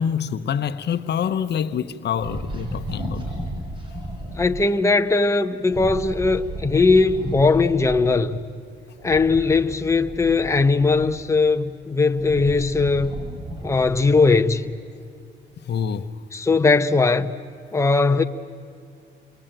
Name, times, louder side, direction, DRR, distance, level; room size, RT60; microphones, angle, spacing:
voice 1, 0.0-3.2 15.7-16.1, left 8 dB, 60° left, 1.0 m, -26 dB
sound 1, 2.2-4.5 5.6-8.0 9.0-11.3 11.9-14.2, right 1 dB, 25° right, 7.5 m, -33 dB
voice 2, 4.3-8.4 9.0-13.2 13.6-14.7 16.3-17.4 17.7-18.2, left 3 dB, 15° left, 1.0 m, -19 dB
29.0 x 23.0 x 9.0 m
cardioid pair, 90°, 20 cm